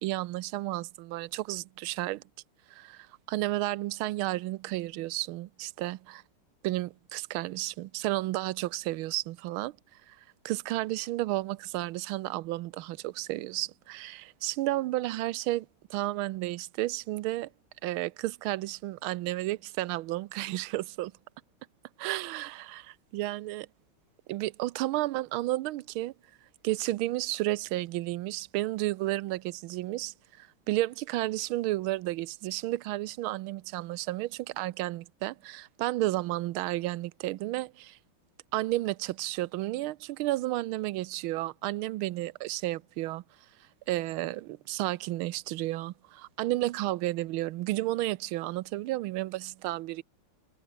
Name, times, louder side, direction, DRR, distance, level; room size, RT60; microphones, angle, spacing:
voice 1, 0.0-2.2 2.7-6.2 6.6-9.7 10.1-10.2 10.4-17.5 17.8-21.1 22.0-23.7 24.3-26.1 26.6-38.0 38.5-43.2 43.9-50.0, right 17 dB, 80° right, 1.4 m, -32 dB
omnidirectional pair, 2.3 m